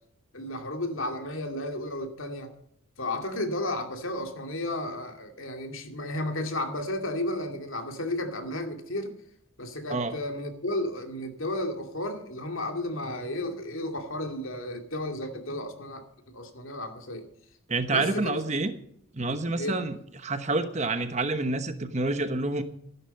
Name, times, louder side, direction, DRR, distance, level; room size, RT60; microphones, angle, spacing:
voice 1, 0.3-2.5 3.0-9.1 9.6-16.0 16.3-17.3 17.9-18.4 19.6-19.8, left 1 dB, 70° left, 5 dB, 2.4 m, -33 dB
voice 2, 17.7-18.7 19.1-20.0 20.2-22.6, right 2 dB, 30° right, 9 dB, 1.1 m, -28 dB
14.5 x 11.5 x 5.3 m, 0.71 s
head